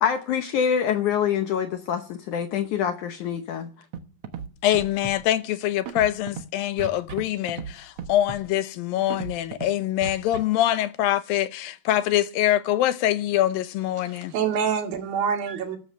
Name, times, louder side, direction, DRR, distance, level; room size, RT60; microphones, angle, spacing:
voice 1, 0.0-3.7, left 8 dB, 70° left, 2.2 m, -25 dB
Scratching (performance technique), 3.9-4.5 4.7-5.2 5.8-6.4 6.8-7.2 7.5-7.7 8.0-8.4 9.1-9.7 10.0-10.4, right 7 dB, 55° right, 1.8 m, -34 dB
voice 2, 4.6-14.3, left 13 dB, 85° left, 2.7 m, -24 dB
voice 3, 14.0-15.8, right 7 dB, 85° right, 4.2 m, -26 dB
13.5 x 13.5 x 6.7 m
omnidirectional pair, 4.0 m